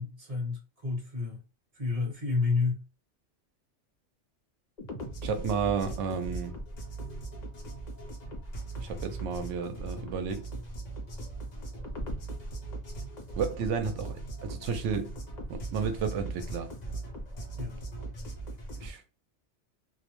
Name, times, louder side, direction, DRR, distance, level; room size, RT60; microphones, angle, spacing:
voice 1, 0.0-1.4 1.7-2.9 17.6-17.8, left 4 dB, 35° right, 1.1 m, -30 dB
sound 1, 4.8-18.9, right 2 dB, 45° left, 0.6 m, -39 dB
voice 2, 5.2-6.6 8.8-10.4 13.4-15.1 15.5-16.7 18.8-19.0, right 6 dB, 80° right, 0.9 m, -32 dB
2.4 x 2.1 x 2.9 m
omnidirectional pair, 1.2 m